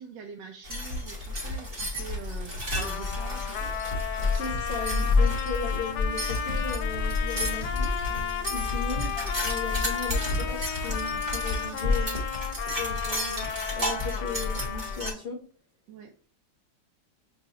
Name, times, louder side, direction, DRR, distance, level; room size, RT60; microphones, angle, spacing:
voice 1, 0.0-3.7 5.1-5.3 8.6-8.8 15.9-16.3, right 7 dB, 75° right, 3 dB, 1.2 m, -44 dB
sound 1, 0.6-15.1, left 2 dB, 25° right, 1.0 m, -30 dB
Trumpet, 2.8-15.2, left 8 dB, 70° left, 1.1 m, -34 dB
voice 2, 4.3-8.0 8.5-12.2 12.8-15.4, left 4 dB, 45° left, -1 dB, 0.9 m, -37 dB
Bass guitar, 8.1-14.3, right 4 dB, 10° left, 1.3 m, -57 dB
6.2 x 2.7 x 2.8 m, 0.41 s
omnidirectional pair, 2.0 m